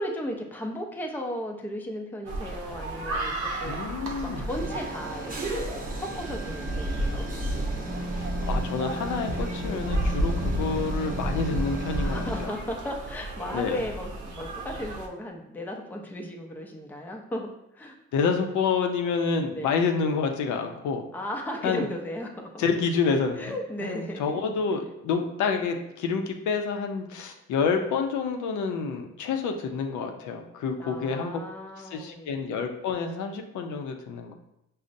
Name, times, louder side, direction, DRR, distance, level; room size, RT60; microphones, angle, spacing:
voice 1, 0.0-3.9 4.2-5.7 6.0-7.3 9.6-9.9 12.0-18.0 19.5-19.7 21.1-22.6 23.1-24.2 30.8-32.4, equal, 5° left, 1 dB, 0.4 m, -35 dB
sound 1, 2.3-15.1, right 1 dB, 75° right, 0.6 m, -32 dB
voice 2, 3.6-4.5 8.1-12.5 13.5-13.8 18.1-21.1 21.6-21.9 22.6-23.4 23.8-31.4 31.8-34.3, left 5 dB, 75° left, 4 dB, 0.5 m, -28 dB
sound 2, 4.5-12.5, right 1 dB, 30° right, 0.7 m, -36 dB
5.1 x 2.0 x 2.6 m, 0.82 s
cardioid pair, 90°, 30 cm